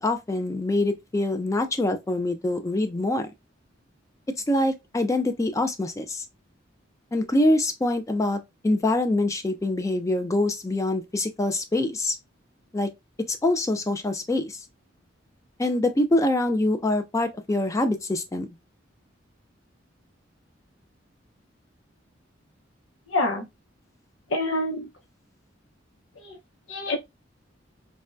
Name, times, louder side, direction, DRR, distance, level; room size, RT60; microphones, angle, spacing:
voice 1, 0.0-3.3 4.5-6.2 7.1-12.2 12.7-12.9 13.3-14.6 15.6-18.5, left 1 dB, 15° left, 0.3 m, -25 dB
voice 2, 23.1-23.4 24.3-24.9 26.2-26.4 26.7-27.0, left 2 dB, 80° left, 0.8 m, -26 dB
3.4 x 2.1 x 2.5 m
head